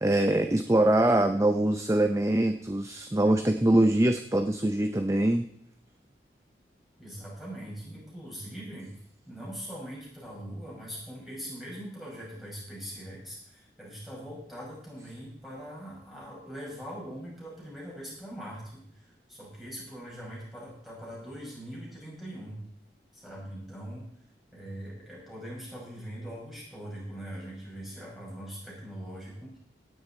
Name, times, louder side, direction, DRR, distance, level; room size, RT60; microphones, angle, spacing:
voice 1, 0.0-5.5, right 1 dB, 15° right, 7 dB, 0.6 m, -23 dB
voice 2, 7.0-8.9 9.3-22.6 23.1-24.2 24.5-29.6, equal, ahead, -6 dB, 5.7 m, -42 dB
16.5 x 9.8 x 4.3 m, 0.67 s
head